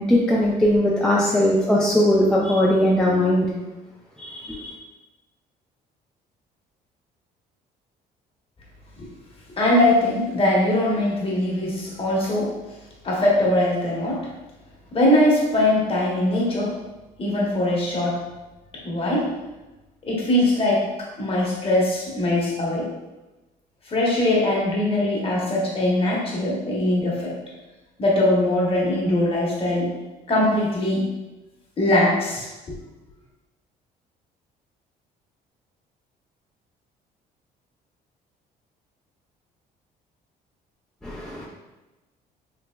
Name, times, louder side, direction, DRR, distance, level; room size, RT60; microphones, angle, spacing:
voice 1, 0.0-3.5 4.2-4.7 41.0-41.5, left 1 dB, 5° left, -5 dB, 0.4 m, -20 dB
voice 2, 9.6-12.5 13.0-14.2 14.9-16.7 17.2-18.2 18.8-19.3 20.1-22.9 23.9-27.3 28.0-29.9 30.3-31.0 31.8-32.7, left 1 dB, 35° left, -4 dB, 1.0 m, -21 dB
3.3 x 2.8 x 2.2 m, 1.1 s
cardioid pair, 110°, 17 cm